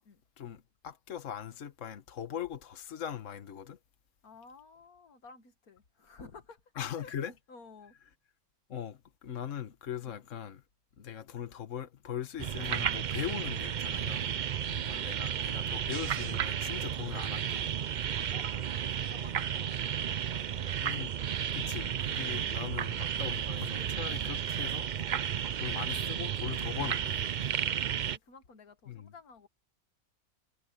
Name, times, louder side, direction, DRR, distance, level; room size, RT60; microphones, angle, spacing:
voice 1, 0.4-3.8 6.8-7.3 8.7-10.6 11.0-14.3 14.7-17.7 20.8-21.1 21.5-24.9 25.6-27.2 28.9-29.1, left 9 dB, 60° left, 1.6 m, -40 dB
voice 2, 4.2-7.1 7.5-8.0 10.0-10.2 14.0-14.5 14.9-15.7 18.0-21.1 22.2-22.5 24.0-24.6 27.7-29.5, left 4 dB, 90° left, 2.3 m, -55 dB
sound 1, 12.4-28.2, right 9 dB, 75° right, 0.4 m, -33 dB
omnidirectional pair, 1.5 m